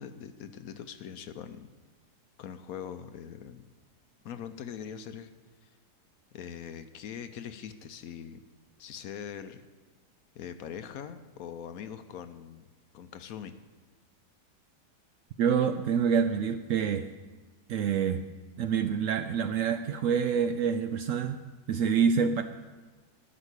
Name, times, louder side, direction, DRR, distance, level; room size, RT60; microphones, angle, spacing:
voice 1, 0.0-1.7 2.4-3.7 4.2-5.3 6.3-8.4 8.8-9.6 10.4-12.6 12.9-13.5, left 8 dB, 70° left, 10 dB, 1.0 m, -42 dB
voice 2, 15.4-17.1 17.7-18.2 18.6-21.4 21.7-22.4, right 7 dB, 70° right, 9 dB, 0.8 m, -26 dB
12.5 x 5.1 x 8.2 m, 1.3 s
omnidirectional pair, 1.7 m